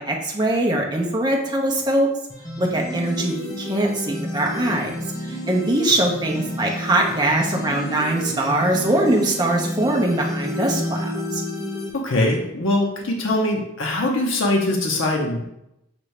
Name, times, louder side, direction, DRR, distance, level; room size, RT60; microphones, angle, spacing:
voice 1, 0.0-2.1 2.6-4.9 5.2-11.4, right 1 dB, 20° right, 0 dB, 0.6 m, -22 dB
sound 1, 2.3-11.9, left 1 dB, 15° left, 0.8 m, -30 dB
voice 2, 11.9-15.4, left 1 dB, 60° left, 0 dB, 0.6 m, -22 dB
5.9 x 2.6 x 3.2 m, 0.83 s
head